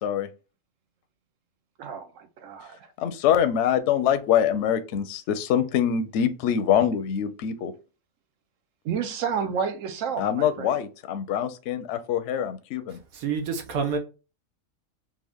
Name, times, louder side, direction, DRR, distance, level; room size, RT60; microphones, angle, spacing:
voice 1, 1.8-2.9 8.8-10.7, right 7 dB, 70° right, 1.0 m, -30 dB
voice 2, 3.0-7.7 10.2-13.0, left 9 dB, 65° left, 0.8 m, -24 dB
voice 3, 12.9-14.0, right 5 dB, 85° right, 1.3 m, -28 dB
3.5 x 2.6 x 3.4 m
omnidirectional pair, 1.5 m